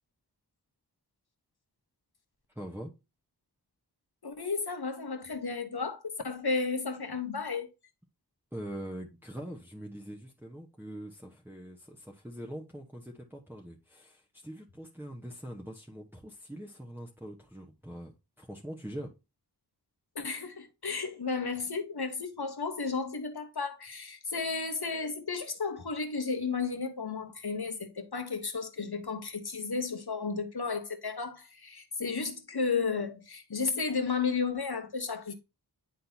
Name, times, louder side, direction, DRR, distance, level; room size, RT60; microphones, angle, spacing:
voice 1, 2.5-2.9 8.5-18.1 18.4-19.1, equal, 5° right, 1.2 m, -43 dB
voice 2, 4.2-7.7 20.1-35.3, left 4 dB, 70° left, 1.2 m, -33 dB
10.0 x 3.8 x 2.8 m
wide cardioid pair, 50°, 40 cm